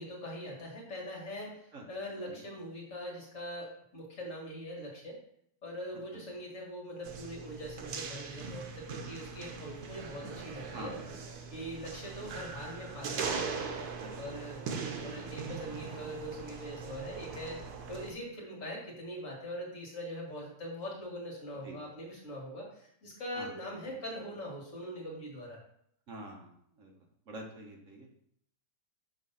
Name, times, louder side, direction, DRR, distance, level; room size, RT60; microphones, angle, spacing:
voice 1, 0.0-5.2 5.6-10.9 11.5-13.4 14.2-17.6 17.9-25.6, equal, 55° left, -2 dB, 1.9 m, -42 dB
sound 1, 7.0-18.1, right 5 dB, 80° right, 1.3 m, -40 dB
voice 2, 10.7-11.2 14.0-14.3 21.6-21.8 23.3-23.6 23.9-24.0 26.1-27.0 27.3-28.1, right 1 dB, 60° right, 1 dB, 1.2 m, -47 dB
6.4 x 3.3 x 5.4 m, 0.69 s
omnidirectional pair, 1.6 m